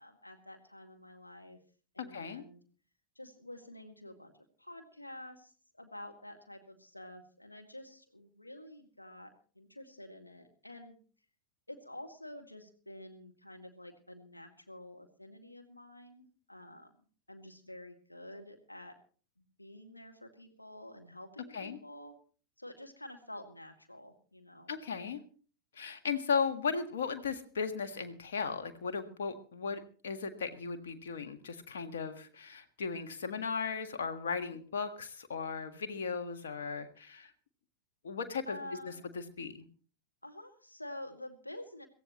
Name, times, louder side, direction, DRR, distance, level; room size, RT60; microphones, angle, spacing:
voice 1, 0.0-1.6 1.9-2.6 3.2-4.3 4.6-11.0 11.7-17.0 17.3-19.0 19.4-22.2 22.6-24.7 38.5-39.1 40.2-41.9, left 1 dB, 85° left, 3 dB, 1.9 m, -49 dB
voice 2, 2.0-2.4 21.5-21.8 24.7-25.2 25.7-37.3 38.0-39.7, left 5 dB, 65° left, 8 dB, 1.5 m, -36 dB
22.5 x 16.0 x 3.0 m, 0.41 s
figure-of-eight pair, 90°, 0 cm